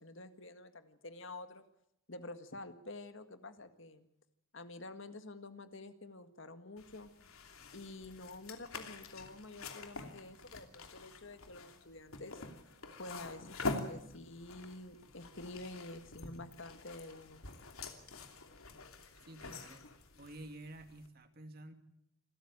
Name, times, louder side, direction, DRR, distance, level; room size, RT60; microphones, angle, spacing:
voice 1, 0.0-1.7 2.1-4.1 4.5-7.1 7.7-12.4 13.0-17.4, left 2 dB, 60° left, 9 dB, 1.8 m, -49 dB
sound 1, 6.8-21.1, left 3 dB, 80° left, 2.9 m, -46 dB
voice 2, 19.3-19.9 20.2-21.7, right 1 dB, 45° right, 7 dB, 2.3 m, -50 dB
27.5 x 14.0 x 8.9 m, 0.78 s
head